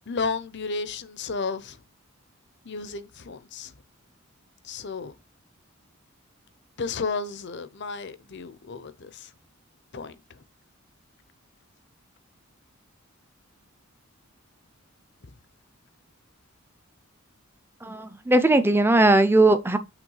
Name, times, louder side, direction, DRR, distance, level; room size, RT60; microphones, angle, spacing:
voice 1, 0.1-1.8 2.6-3.7 4.6-5.1 6.8-9.3 9.9-10.4, left 4 dB, 55° left, 0.7 m, -33 dB
voice 2, 17.8-19.8, right 2 dB, 10° right, 0.6 m, -19 dB
6.0 x 3.1 x 5.5 m
head